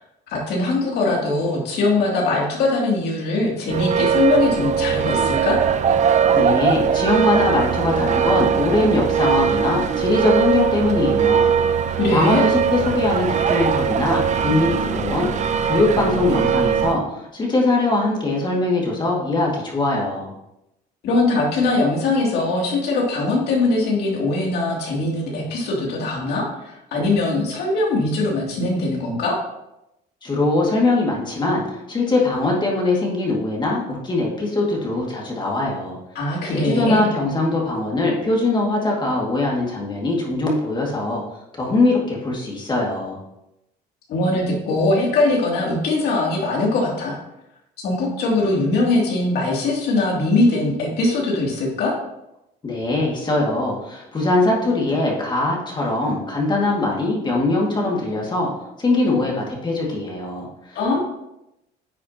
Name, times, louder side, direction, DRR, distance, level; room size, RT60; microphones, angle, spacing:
voice 1, 0.3-5.6 12.0-12.5 21.0-29.3 36.1-37.1 44.1-47.2 47.8-51.9 60.7-61.0, left 2 dB, 75° left, -2 dB, 2.7 m, -21 dB
sound 1, 3.7-17.0, right 7 dB, 45° right, 0.7 m, -20 dB
voice 2, 6.3-15.3 15.6-20.3 30.2-36.0 36.5-41.2 41.6-43.2 52.6-58.5 58.8-61.0, left 2 dB, 25° left, -2 dB, 2.1 m, -21 dB
10.0 x 6.8 x 2.9 m, 0.86 s
cardioid pair, 110°, 17 cm